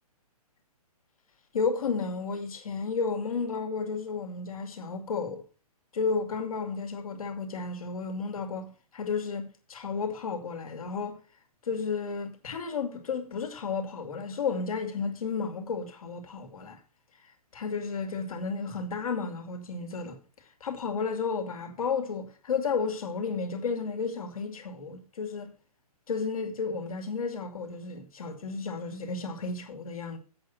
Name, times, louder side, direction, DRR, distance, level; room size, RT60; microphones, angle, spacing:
voice 1, 1.5-5.4 5.9-11.2 11.6-16.8 17.5-20.2 20.6-25.5 26.1-30.2, left 5 dB, 65° left, 2.5 m, -32 dB
8.1 x 6.5 x 6.5 m
hypercardioid pair, 165°, 20 cm